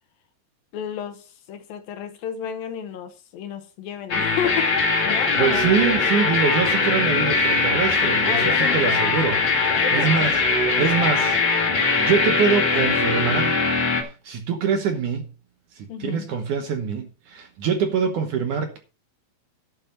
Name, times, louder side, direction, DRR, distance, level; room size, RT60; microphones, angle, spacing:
voice 1, 0.7-4.7 5.1-5.7 8.2-9.1 9.8-10.4 15.9-16.3, left 9 dB, 70° left, 2.6 m, -32 dB
sound 1, 4.1-14.0, left 4 dB, 40° left, 2.2 m, -21 dB
voice 2, 5.4-11.4 12.0-13.6 14.0-15.3 15.7-18.8, right 6 dB, 65° right, 2.2 m, -24 dB
11.5 x 8.2 x 4.3 m
omnidirectional pair, 4.7 m